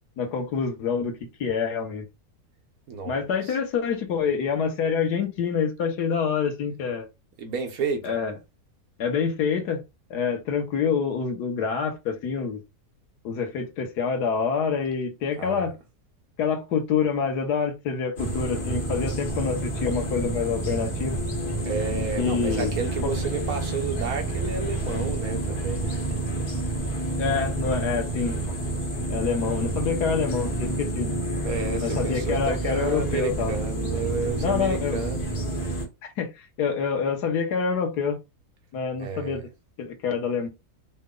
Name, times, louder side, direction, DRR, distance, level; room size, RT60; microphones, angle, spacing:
voice 1, 0.2-2.0 3.0-7.1 8.0-8.3 9.0-9.8 10.1-12.6 13.2-15.7 16.4-21.2 22.2-22.7 27.2-28.4 29.1-31.1 31.8-33.5 34.4-35.0 36.0-38.2 38.7-39.4 39.8-40.5, left 6 dB, 90° left, 1.6 m, -26 dB
voice 2, 2.9-3.5 7.4-8.2 15.4-15.7 21.6-26.0 31.4-35.2 39.0-39.4, right 4 dB, 70° right, 1.3 m, -31 dB
sound 1, 18.2-35.9, right 2 dB, 70° left, 1.8 m, -29 dB
5.0 x 2.2 x 3.7 m
omnidirectional pair, 1.7 m